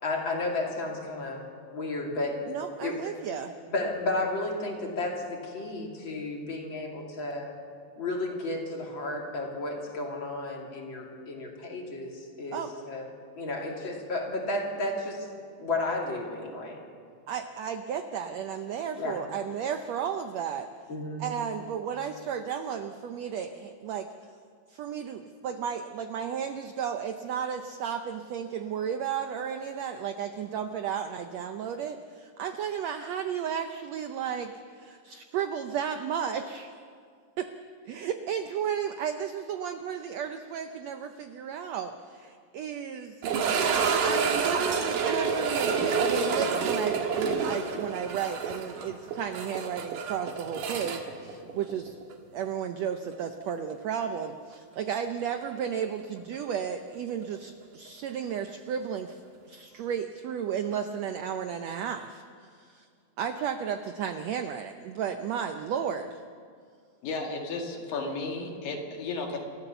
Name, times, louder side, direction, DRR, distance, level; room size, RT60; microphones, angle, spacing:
voice 1, 0.0-1.4 1.7-2.4 2.8-3.1 3.7-7.5 8.0-13.1 13.4-15.3 15.6-16.8 19.0-19.2 20.9-21.3, left 2 dB, 35° left, 0 dB, 3.0 m, -33 dB
voice 2, 2.5-3.5 12.5-12.7 17.3-20.7 21.2-24.1 24.7-36.7 37.4-37.5 37.8-43.2 44.0-52.0 52.3-59.2 59.5-62.9 63.2-66.2, right 8 dB, 85° right, 7 dB, 1.5 m, -33 dB
sound 1, 43.2-52.2 52.4-52.5 53.1-53.2 55.8-55.9, right 5 dB, 70° right, 3.1 m, -28 dB
voice 3, 67.0-69.4, left 3 dB, 75° left, 2 dB, 3.7 m, -33 dB
29.0 x 14.0 x 6.9 m, 2.1 s
omnidirectional pair, 4.1 m